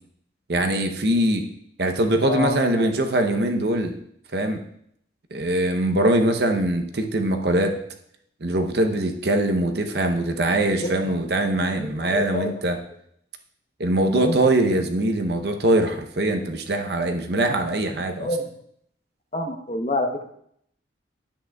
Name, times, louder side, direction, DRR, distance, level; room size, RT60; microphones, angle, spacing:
voice 1, 0.5-1.5 1.8-4.0 4.3-4.6 5.3-7.8 8.4-12.8 13.8-18.3, right 1 dB, 60° right, 5 dB, 0.8 m, -22 dB
voice 2, 2.3-2.9 10.8-11.2 11.5-12.5 14.1-14.4 18.2-18.5 19.3-20.3, left 1 dB, 35° left, 4 dB, 0.8 m, -28 dB
10.0 x 8.6 x 2.3 m, 0.69 s
head